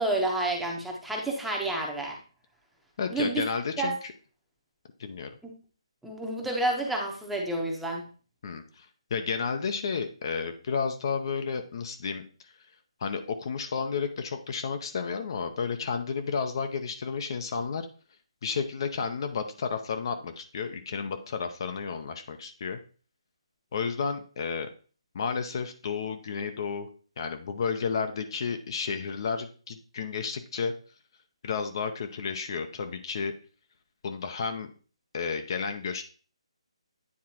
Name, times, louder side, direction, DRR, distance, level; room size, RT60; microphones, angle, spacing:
voice 1, 0.0-2.2 3.1-3.4 3.8-3.9 6.0-8.1, right 2 dB, 5° right, 0 dB, 0.9 m, -29 dB
voice 2, 3.0-4.1 5.0-5.3 8.4-8.9 9.1-12.2 13.0-17.9 18.4-22.8 23.7-24.7 25.1-26.9 27.2-30.7 31.4-33.3 34.0-34.7 35.1-36.0, left 5 dB, 45° left, 7 dB, 0.6 m, -32 dB
9.5 x 3.7 x 2.9 m, 0.39 s
figure-of-eight pair, 150°, 3 cm